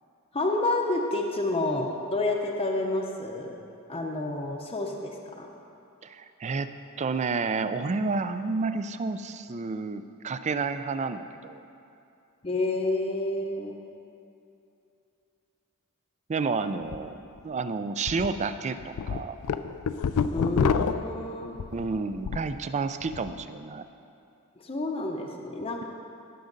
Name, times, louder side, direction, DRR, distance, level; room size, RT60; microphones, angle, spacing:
voice 1, 0.3-3.5 3.9-5.5 12.4-13.7 20.3-21.6 24.6-25.8, left 2 dB, 25° left, 0 dB, 0.7 m, -29 dB
voice 2, 6.0-11.6 16.3-19.4 21.7-23.8, right 4 dB, 30° right, 11 dB, 0.4 m, -30 dB
sound 1, 16.8-17.0 17.4-17.5 18.1-18.3 18.7-22.5 22.9-23.3, left 6 dB, 90° left, 0.4 m, -28 dB
17.5 x 6.4 x 3.9 m, 2.7 s
head